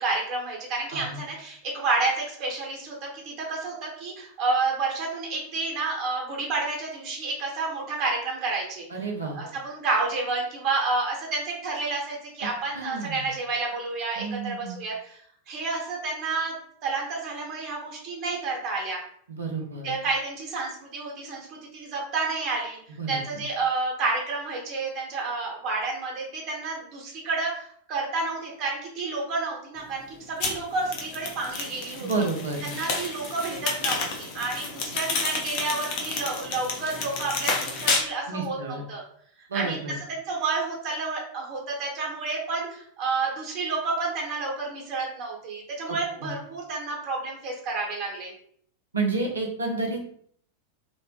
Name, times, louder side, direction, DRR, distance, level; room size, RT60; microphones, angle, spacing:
voice 1, 0.0-8.9 9.3-16.5 16.8-19.0 19.8-22.8 23.1-32.1 32.6-39.0 39.5-39.8 40.1-48.3, right 3 dB, 40° right, -2 dB, 1.0 m, -30 dB
voice 2, 0.9-1.2 8.9-9.4 12.7-13.3 14.2-14.8 19.3-19.9 23.0-23.4 32.0-32.7 38.3-38.8 39.5-39.9 45.9-46.0 46.2-46.3 48.9-50.1, right 3 dB, 75° right, 1 dB, 0.7 m, -30 dB
sound 1, 30.4-38.0, left 4 dB, 45° left, 0.7 m, -30 dB
3.0 x 2.1 x 2.8 m, 0.62 s
figure-of-eight pair, 90°, 0 cm